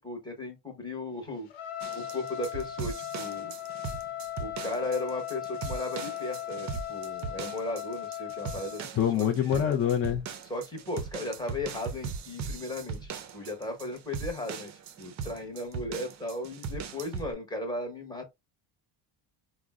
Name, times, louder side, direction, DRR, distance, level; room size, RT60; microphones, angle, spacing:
voice 1, 0.0-1.5 1.9-3.5 4.4-9.6 10.5-14.7 15.0-18.3, left 2 dB, 10° left, 0.9 m, -36 dB
Trumpet, 1.5-8.8, left 12 dB, 75° left, 0.9 m, -38 dB
sound 1, 1.8-17.3, right 6 dB, 40° right, 0.5 m, -39 dB
voice 2, 9.0-10.2, left 9 dB, 30° left, 0.4 m, -25 dB
3.7 x 2.1 x 2.3 m
cardioid pair, 120°, 47 cm